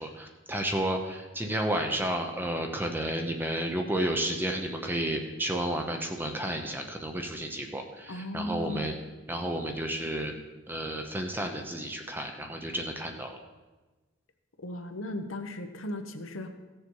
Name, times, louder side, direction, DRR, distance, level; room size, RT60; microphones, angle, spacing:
voice 1, 0.0-8.9 9.3-10.3 10.7-13.4, right 1 dB, 10° right, 3 dB, 0.8 m, -32 dB
voice 2, 8.1-9.0 14.6-16.5, left 1 dB, 75° left, 6 dB, 1.0 m, -36 dB
16.0 x 6.7 x 4.7 m, 1.2 s
head